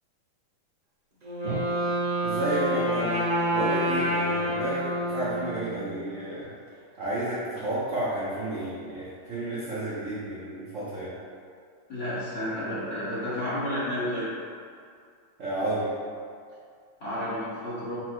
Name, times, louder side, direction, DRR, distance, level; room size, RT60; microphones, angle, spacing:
Wind instrument woodwind instrument, 1.2-6.1, equal, 85° right, 0.3 m, -28 dB
voice 1, 2.2-3.3 3.5-6.5 7.0-11.1 15.4-15.9, right 1 dB, 65° right, -9 dB, 0.7 m, -31 dB
voice 2, 11.9-14.3 17.0-17.9, left 1 dB, 45° left, -11 dB, 1.0 m, -31 dB
5.8 x 2.0 x 4.5 m, 2.3 s
omnidirectional pair, 2.4 m